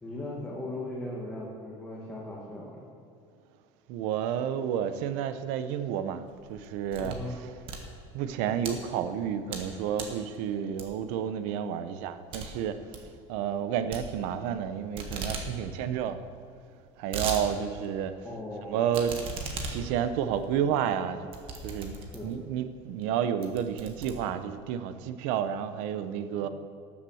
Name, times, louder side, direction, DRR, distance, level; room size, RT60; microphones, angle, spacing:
voice 1, 0.0-2.8 7.0-7.4 18.2-18.7 22.1-22.4, left 1 dB, 10° left, -5 dB, 1.5 m, -38 dB
voice 2, 3.9-7.2 8.1-12.9 13.3-16.2 17.0-18.1 18.7-19.2 19.7-21.3 21.6-21.9 22.2-26.5, right 9 dB, 75° right, 11 dB, 0.7 m, -30 dB
sound 1, 6.3-7.3 7.6-8.7 9.2-9.7 9.9-10.2 10.8-11.2 11.5-11.6 11.9-12.0 12.3-12.5 12.8-13.1 13.9-14.6 14.9-15.5 15.8-15.9 16.1-16.2 16.7-17.4 17.8-17.9 18.9-22.4 23.0-23.1 23.4-24.7, right 4 dB, 45° right, 1.5 m, -37 dB
13.0 x 7.3 x 6.3 m, 2.4 s
cardioid pair, 160°, 13 cm